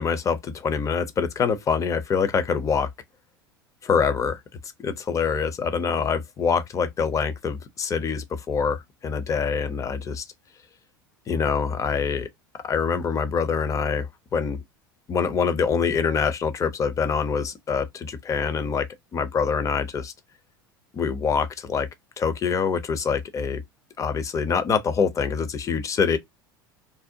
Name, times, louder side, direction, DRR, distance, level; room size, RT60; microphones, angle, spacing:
voice 1, 0.0-2.9 3.8-4.4 4.8-10.2 11.3-12.3 12.6-14.6 15.1-18.9 19.1-20.1 20.9-21.9 22.2-23.6 24.0-26.2, left 6 dB, 25° left, 0.5 m, -25 dB
2.6 x 2.0 x 2.6 m
hypercardioid pair, 80°, 12 cm